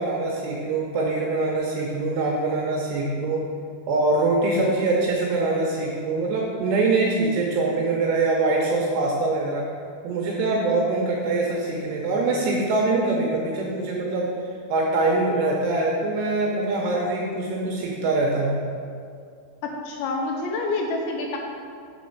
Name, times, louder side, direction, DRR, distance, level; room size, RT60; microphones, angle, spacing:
voice 1, 0.0-3.5 3.9-9.7 10.0-14.3 14.7-18.6, right 2 dB, 80° right, -2 dB, 2.6 m, -23 dB
voice 2, 19.6-21.4, left 3 dB, 80° left, 1 dB, 2.8 m, -27 dB
7.0 x 4.2 x 6.6 m, 2.3 s
omnidirectional pair, 5.5 m